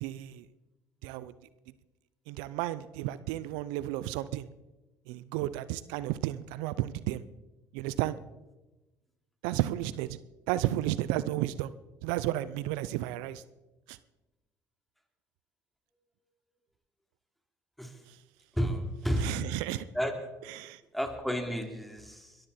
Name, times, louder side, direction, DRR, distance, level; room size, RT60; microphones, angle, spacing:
voice 1, 0.0-0.5 1.0-1.3 2.3-4.5 5.1-7.2 7.7-8.2 9.4-10.2 10.5-11.7 12.0-13.4 13.9-14.0 19.2-19.9 20.5-20.8, right 15 dB, 75° right, 17 dB, 0.5 m, -32 dB
voice 2, 18.5-19.3 19.9-20.2 20.9-22.4, equal, ahead, 4 dB, 3.4 m, -31 dB
21.5 x 14.5 x 4.4 m, 1.1 s
hypercardioid pair, 65°, 8 cm